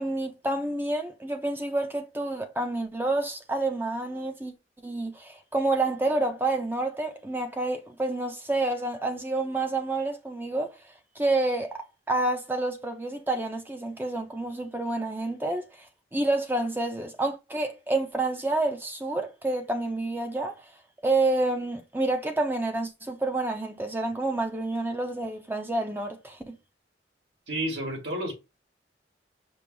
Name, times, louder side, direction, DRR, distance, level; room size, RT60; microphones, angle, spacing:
voice 1, 0.0-4.5 4.8-10.8 11.2-11.8 12.1-15.9 16.1-20.6 21.0-26.6, right 2 dB, 10° right, 0.5 m, -28 dB
voice 2, 27.5-28.3, right 1 dB, 85° right, 2.0 m, -30 dB
5.3 x 2.0 x 4.6 m
head